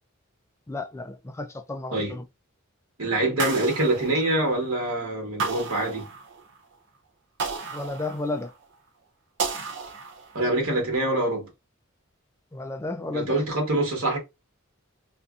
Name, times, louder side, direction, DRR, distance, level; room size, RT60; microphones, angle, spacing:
voice 1, 0.7-2.2 7.7-8.5 12.5-13.4, left 2 dB, 15° left, 0.3 m, -32 dB
voice 2, 3.0-6.1 10.3-11.5 13.1-14.2, right 1 dB, 75° right, 1.3 m, -25 dB
sound 1, 3.4-4.7 5.4-6.6 7.4-8.6 9.4-10.6, right 4 dB, 60° right, 0.6 m, -33 dB
2.6 x 2.5 x 2.4 m
head